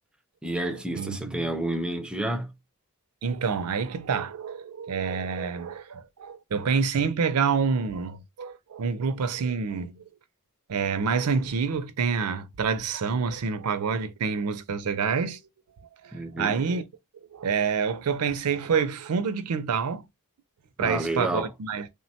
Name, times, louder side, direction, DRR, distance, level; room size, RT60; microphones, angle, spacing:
voice 1, 0.4-2.5 16.1-16.6 20.8-21.5, right 1 dB, 5° right, 0.4 m, -30 dB
voice 2, 0.9-1.4 3.2-10.0 10.7-15.4 16.0-16.8 17.3-20.0 20.8-21.9, right 5 dB, 80° right, 0.5 m, -27 dB
3.3 x 2.1 x 2.7 m
head